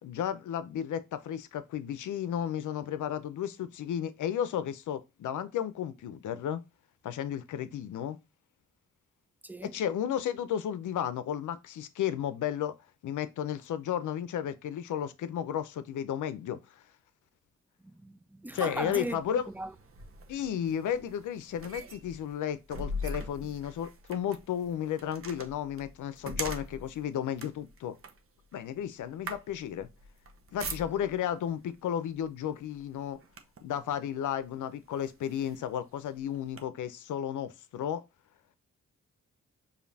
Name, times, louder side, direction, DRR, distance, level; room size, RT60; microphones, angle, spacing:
voice 1, 0.0-6.6 7.0-8.2 9.6-12.8 13.0-16.6 18.5-19.5 20.3-27.9 28.5-29.9 30.5-33.2 33.6-38.0, left 9 dB, 85° left, 0.6 m, -33 dB
voice 2, 9.4-9.8 17.8-19.7, right 1 dB, 5° right, 0.3 m, -38 dB
sound 1, 18.5-31.3 32.1-32.4 32.8-33.8 34.4-34.5 34.9-36.6, equal, 45° right, 0.8 m, -42 dB
5.1 x 2.7 x 2.7 m
cardioid pair, 70°, 30 cm